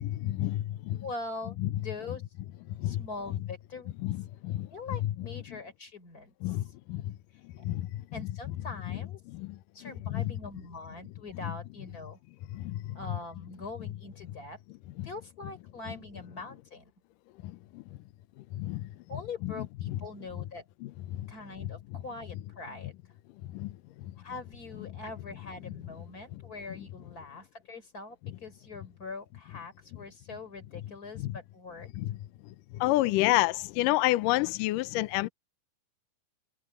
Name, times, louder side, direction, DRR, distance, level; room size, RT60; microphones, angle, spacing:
voice 1, 0.0-1.0 1.6-1.7 2.8-3.0 4.0-4.7 5.0-5.1 6.4-7.1 7.6-8.0 9.3-10.3 12.5-13.0 15.0-15.1 17.4-17.8 18.5-18.9 19.9-20.0 20.8-21.3 21.6-21.7 23.5-23.7 24.0-24.1 25.7-25.8 31.2-31.4 32.0-32.2 32.7-35.3, left 17 dB, 75° left, 2.2 m, -30 dB
voice 2, 1.0-2.2 2.8-3.9 4.7-6.6 8.1-9.2 9.7-12.2 12.9-14.6 15.0-16.9 19.1-20.6 21.3-22.9 24.2-31.9, left 3 dB, 25° left, 4.5 m, -43 dB
omnidirectional pair, 4.1 m